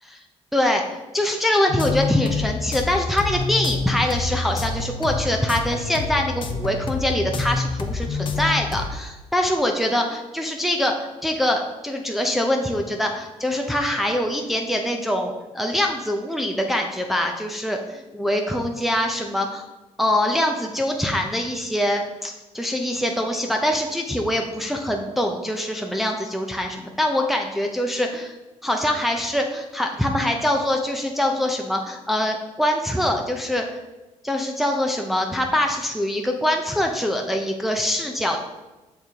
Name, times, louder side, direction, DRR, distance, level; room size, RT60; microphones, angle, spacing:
voice 1, 0.5-19.7 20.0-28.3 28.6-33.7 34.2-38.4, left 1 dB, ahead, 2 dB, 0.6 m, -24 dB
sound 1, 1.7-8.9, left 4 dB, 45° left, 0.6 m, -27 dB
6.7 x 3.6 x 4.5 m, 1.1 s
cardioid pair, 125°, 12 cm